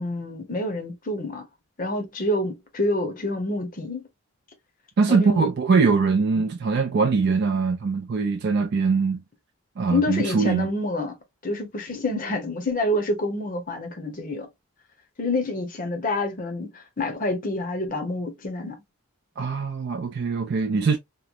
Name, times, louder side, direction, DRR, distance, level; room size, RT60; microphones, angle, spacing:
voice 1, 0.0-1.5 1.8-4.1 5.1-5.5 9.9-11.1 11.4-14.5 15.2-18.8, left 2 dB, 40° left, 0.7 m, -27 dB
voice 2, 5.0-9.2 9.8-10.7 19.4-21.0, right 4 dB, 50° right, 0.3 m, -22 dB
2.9 x 2.0 x 2.4 m
head